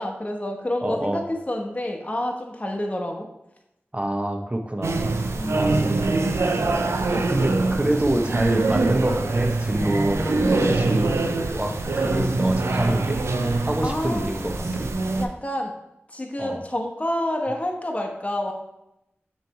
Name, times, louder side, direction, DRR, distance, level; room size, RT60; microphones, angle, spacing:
voice 1, 0.0-3.3 5.3-6.0 13.8-14.3 15.2-15.7 16.1-18.5, left 1 dB, 30° left, 2 dB, 0.9 m, -28 dB
voice 2, 0.8-1.2 3.9-5.0 5.5-5.8 7.1-13.2 13.6-14.9 16.4-16.6, right 1 dB, 25° right, 3 dB, 0.8 m, -26 dB
sound 1, 4.8-15.2, right 3 dB, 85° right, 0.5 m, -24 dB
6.7 x 3.2 x 4.6 m, 0.87 s
cardioid pair, 40°, 5 cm